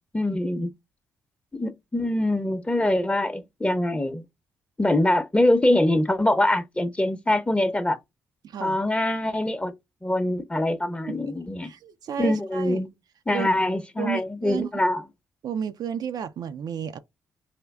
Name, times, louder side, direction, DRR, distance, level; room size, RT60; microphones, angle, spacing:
voice 1, 0.1-0.7 1.5-4.2 4.8-8.0 8.6-9.7 10.0-11.7 12.2-12.9 13.3-15.0, left 1 dB, 15° left, 0.7 m, -24 dB
voice 2, 8.4-8.8 11.1-11.3 11.6-12.8 13.3-13.5 14.0-14.8 15.4-17.0, right 8 dB, 55° right, 0.4 m, -32 dB
4.9 x 2.2 x 2.2 m
hypercardioid pair, 40°, 8 cm